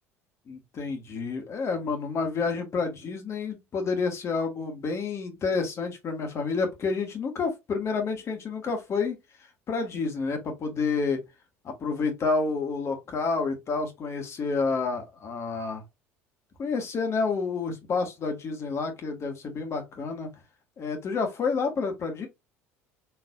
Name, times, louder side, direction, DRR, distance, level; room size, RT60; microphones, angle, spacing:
voice 1, 0.5-9.2 9.7-11.2 11.6-15.8 16.6-20.3 20.8-22.3, left 4 dB, 40° left, 1.4 m, -29 dB
4.5 x 3.1 x 2.4 m
figure-of-eight pair, 60°, 7 cm